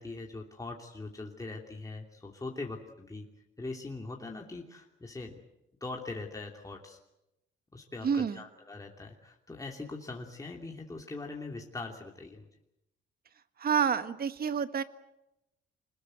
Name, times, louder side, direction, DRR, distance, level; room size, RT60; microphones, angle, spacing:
voice 1, 0.0-3.3 3.6-5.4 5.8-7.0 7.7-12.5, left 3 dB, 15° left, 0 dB, 2.9 m, -41 dB
voice 2, 8.0-8.4 13.6-14.8, right 7 dB, 50° right, 11 dB, 1.5 m, -28 dB
25.5 x 20.5 x 8.0 m, 0.89 s
cardioid pair, 90°, 20 cm